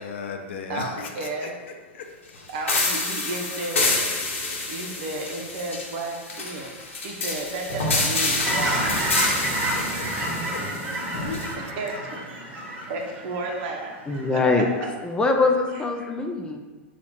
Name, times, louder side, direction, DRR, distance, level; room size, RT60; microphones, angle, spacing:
voice 1, 0.0-2.5 9.2-11.8 12.4-12.9, left 5 dB, 70° left, 4 dB, 0.6 m, -38 dB
voice 2, 0.7-1.5 2.5-4.1 4.7-9.0 11.8-12.2 12.9-14.0 14.2-14.6 15.7-15.8, right 2 dB, 55° right, 1 dB, 0.8 m, -33 dB
sound 1, 2.7-11.5, left 3 dB, 90° left, 0.9 m, -27 dB
Fowl / Chirp tweet, 8.4-14.3 14.7-14.9, right 1 dB, 25° right, 1.1 m, -29 dB
voice 3, 14.1-14.7 15.0-16.6, left 3 dB, 15° left, 2 dB, 0.4 m, -22 dB
4.1 x 2.4 x 4.4 m, 1.3 s
hypercardioid pair, 120°, 7 cm